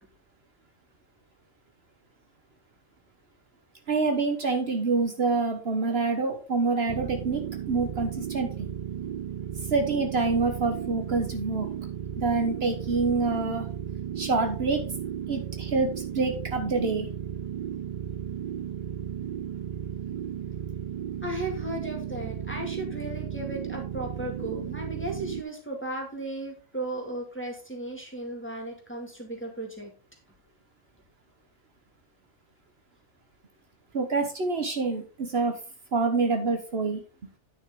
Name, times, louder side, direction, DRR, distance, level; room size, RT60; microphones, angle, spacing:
voice 1, 3.9-7.4 7.7-8.7 9.7-11.7 12.2-13.6 14.2-14.8 15.3-17.1 33.9-35.6 35.9-37.0, right 4 dB, 60° right, 5 dB, 1.4 m, -26 dB
sound 1, 6.9-25.4, right 9 dB, 80° right, 0.3 m, -35 dB
voice 2, 21.2-29.9, right 1 dB, 10° left, 0 dB, 2.2 m, -35 dB
9.5 x 6.3 x 3.7 m, 0.34 s
omnidirectional pair, 1.2 m